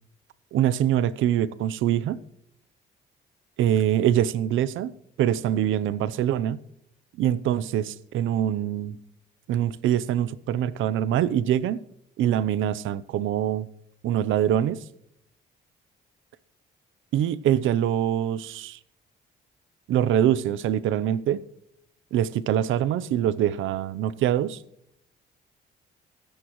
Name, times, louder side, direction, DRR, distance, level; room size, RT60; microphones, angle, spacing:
voice 1, 0.5-2.2 3.6-4.9 5.2-6.6 7.2-9.0 9.5-11.8 12.2-13.7 14.0-14.8 17.1-18.8 19.9-21.4 22.1-24.6, right 11 dB, 80° right, 0.7 m, -24 dB
24.5 x 10.5 x 3.1 m
cardioid pair, 90°, 20 cm